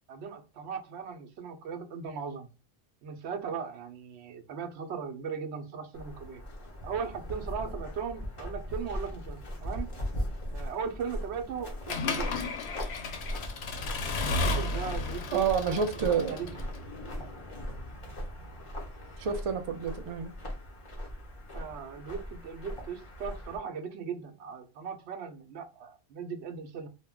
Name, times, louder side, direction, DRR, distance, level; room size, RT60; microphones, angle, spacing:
voice 1, 0.1-2.5 3.0-6.4 6.8-9.9 10.5-12.3 14.3-16.6 21.5-26.9, right 6 dB, 85° right, 0.8 m, -38 dB
sound 1, 5.9-23.6, equal, 35° left, 0.7 m, -39 dB
Accelerating revving vroom / Mechanisms, 11.9-16.8, left 2 dB, 80° left, 0.8 m, -33 dB
voice 2, 15.3-16.4 19.2-20.3, right 6 dB, 55° right, 0.4 m, -28 dB
2.1 x 2.1 x 3.5 m
omnidirectional pair, 1.1 m